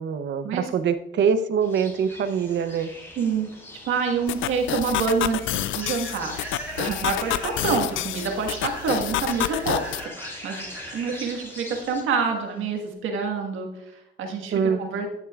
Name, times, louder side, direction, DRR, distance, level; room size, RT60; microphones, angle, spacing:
voice 1, 0.0-2.9 14.5-14.8, right 6 dB, 65° right, 12 dB, 0.7 m, -24 dB
sound 1, 1.6-12.0, left 1 dB, 10° left, 2.7 m, -43 dB
voice 2, 3.1-3.5 3.9-9.9 10.2-10.7 10.9-15.3, right 5 dB, 85° right, 3 dB, 1.6 m, -27 dB
sound 2, 4.3-10.0, left 13 dB, 80° left, 0.4 m, -29 dB
Human voice / Train, 4.3-12.9, right 1 dB, 10° right, 3.2 m, -42 dB
14.0 x 6.6 x 2.4 m, 0.85 s
cardioid pair, 90°, 20 cm